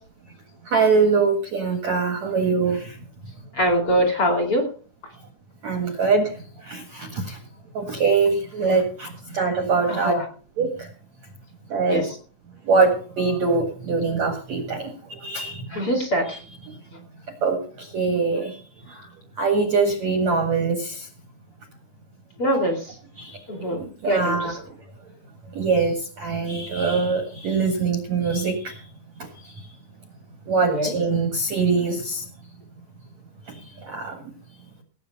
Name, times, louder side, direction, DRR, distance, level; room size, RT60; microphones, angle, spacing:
voice 1, 0.7-3.0 5.6-6.3 6.6-7.4 7.7-10.1 10.6-10.9 11.7-12.1 12.7-15.7 16.3-16.4 17.4-18.6 18.9-19.0 19.4-21.1 23.2-23.4 23.8-24.6 25.5-28.7 30.5-32.2 33.9-34.2, right 4 dB, 55° right, 4 dB, 2.0 m, -23 dB
voice 2, 3.6-4.6 9.9-10.2 11.9-12.0 15.7-16.2 22.4-22.8 23.5-23.8 24.0-24.4 30.7-30.9, equal, 35° left, 5 dB, 2.6 m, -22 dB
18.0 x 8.4 x 5.4 m, 0.40 s
omnidirectional pair, 5.4 m